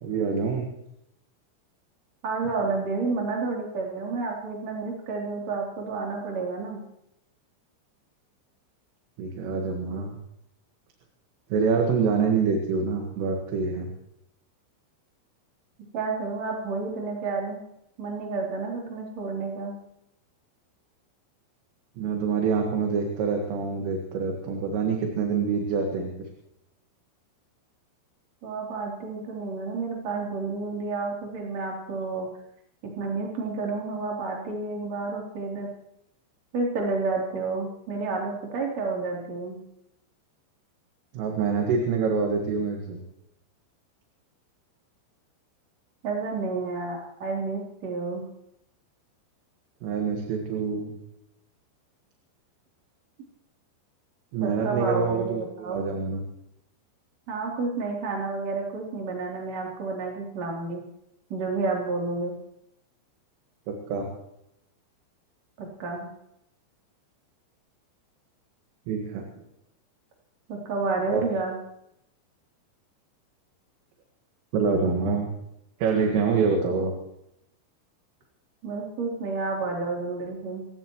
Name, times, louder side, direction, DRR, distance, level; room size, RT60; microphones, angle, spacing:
voice 1, 0.0-0.7 9.2-10.2 11.5-13.9 22.0-26.1 41.1-43.0 49.8-50.9 54.3-56.2 63.7-64.1 68.9-69.2 71.1-71.2 74.5-75.3 75.8-76.9, right 5 dB, 80° right, 2 dB, 4.3 m, -26 dB
voice 2, 2.2-6.8 15.9-17.6 18.0-19.8 28.4-32.3 32.8-35.7 36.5-39.6 46.0-48.2 54.4-55.8 57.3-60.8 61.3-62.4 65.6-66.1 70.5-71.6 78.6-80.7, right 3 dB, 35° right, -2 dB, 4.0 m, -30 dB
28.5 x 15.0 x 3.1 m, 0.80 s
omnidirectional pair, 5.9 m